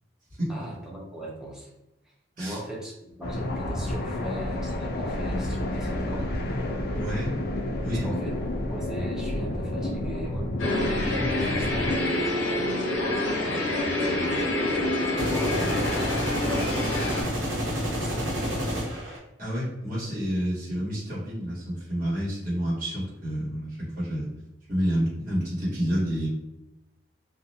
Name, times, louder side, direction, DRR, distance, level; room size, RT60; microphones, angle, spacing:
voice 1, 0.5-1.7 2.4-6.3 7.9-10.9 11.4-12.4 13.4-16.7 17.6-19.0, equal, 5° right, -4 dB, 0.7 m, -38 dB
sound 1, 3.2-12.0, left 1 dB, 55° left, 0.5 m, -30 dB
voice 2, 7.0-7.3 7.8-8.1 19.4-24.3 24.7-26.3, equal, 50° right, -9 dB, 1.4 m, -29 dB
sound 2, 10.6-17.2, left 1 dB, 90° left, 0.7 m, -27 dB
sound 3, 15.2-19.2, equal, 70° right, 0.9 m, -29 dB
2.6 x 2.2 x 2.7 m, 0.93 s
head